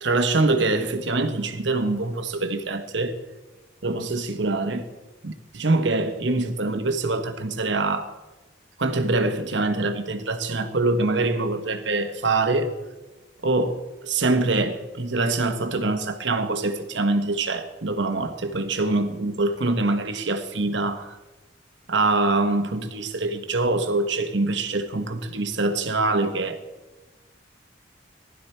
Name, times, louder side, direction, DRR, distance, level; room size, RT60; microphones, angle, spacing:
voice 1, 0.0-3.1 3.8-4.8 5.2-8.1 8.8-12.7 13.4-21.2 21.9-26.6, right 2 dB, 70° right, 1.2 m, -24 dB
16.0 x 11.5 x 4.4 m
head